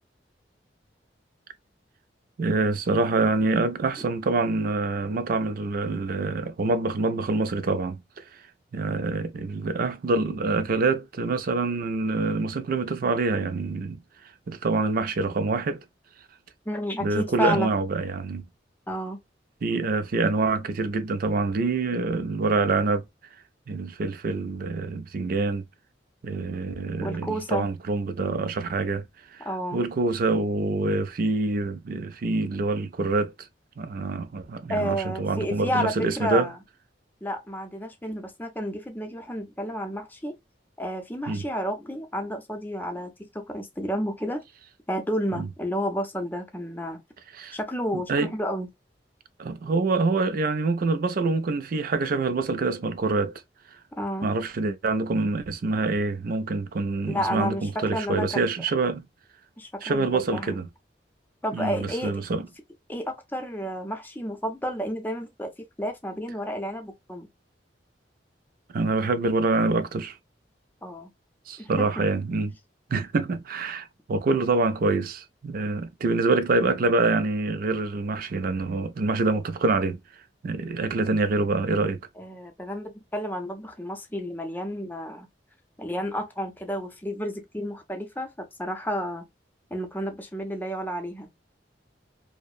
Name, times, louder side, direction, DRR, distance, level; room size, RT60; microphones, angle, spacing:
voice 1, 2.4-8.4 8.7-14.0 14.5-15.8 17.0-18.4 19.6-23.0 23.7-25.6 26.2-29.0 29.3-33.3 33.8-36.5 41.3-41.4 45.3-45.5 47.3-47.6 47.9-48.3 49.4-53.3 54.2-59.1 59.8-60.6 61.5-62.4 68.7-70.2 71.5-72.6 72.9-80.0 80.4-82.0, right 3 dB, 55° right, 0.4 m, -26 dB
voice 2, 16.7-17.7 18.9-19.2 27.0-27.7 29.4-29.8 34.7-36.6 37.2-40.4 40.8-44.4 44.9-47.0 47.5-48.7 50.8-50.9 54.0-54.3 57.1-58.5 59.6-60.5 61.4-62.1 62.9-65.5 65.8-67.3 70.8-71.1 71.6-71.9 82.2-85.3 85.8-89.3 89.7-91.3, equal, 10° left, 0.6 m, -31 dB
2.8 x 2.1 x 2.3 m
head